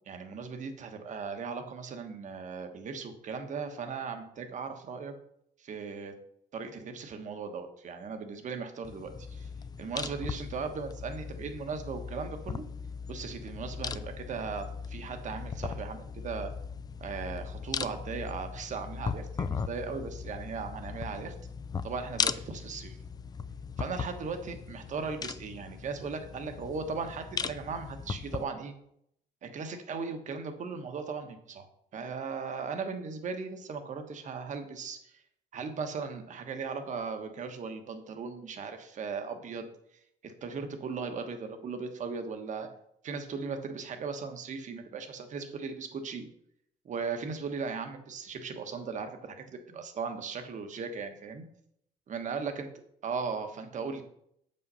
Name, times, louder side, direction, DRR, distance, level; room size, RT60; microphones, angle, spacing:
voice 1, 0.1-5.1 5.6-6.1 6.5-9.5 9.8-12.6 13.1-16.5 17.0-21.3 21.8-23.0 23.8-28.7 29.4-31.7 31.9-35.2 35.5-39.6 40.2-42.7 43.0-46.3 46.8-51.4 52.1-52.7 53.0-54.0, right 5 dB, 45° right, 6 dB, 1.2 m, -37 dB
sound 1, 8.9-28.4, left 6 dB, 25° left, 0.4 m, -38 dB
7.4 x 5.5 x 5.5 m, 0.72 s
cardioid pair, 110°, 17 cm